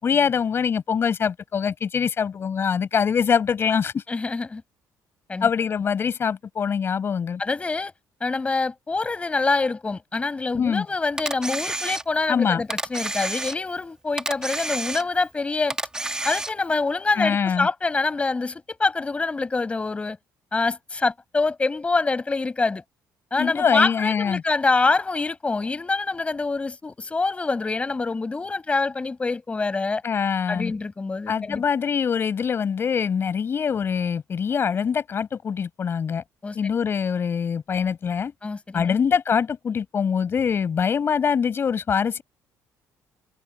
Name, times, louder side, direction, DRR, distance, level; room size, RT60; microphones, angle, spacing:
voice 1, 0.0-4.0 5.4-7.4 10.6-10.9 12.3-12.6 17.1-17.7 23.4-24.4 30.0-30.7 31.3-36.2 36.5-38.3 38.7-42.2, left 6 dB, 35° left, 6.2 m, -23 dB
voice 2, 4.1-4.6 5.3-5.5 7.4-7.9 8.2-15.8 16.2-20.2 20.5-22.8 23.3-30.0 30.5-31.6 36.4-36.8 38.4-39.0, left 3 dB, 20° left, 6.2 m, -25 dB
Camera, 11.2-12.3 12.7-13.8 14.2-15.3 15.7-16.8, right 2 dB, 10° right, 1.8 m, -30 dB
cardioid pair, 135°, 7 cm